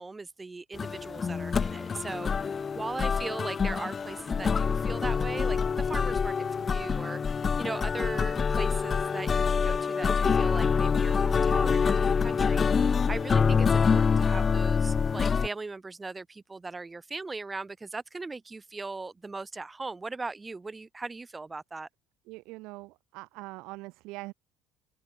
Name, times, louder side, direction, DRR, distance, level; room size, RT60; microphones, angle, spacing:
voice 1, 0.0-21.9, right 3 dB, 20° right, 1.6 m, -39 dB
sound 1, 0.7-15.5, left 6 dB, 35° left, 0.8 m, -26 dB
voice 2, 22.3-24.3, right 22 dB, 65° right, 2.7 m, -42 dB
open air
hypercardioid pair, 60°, 0 cm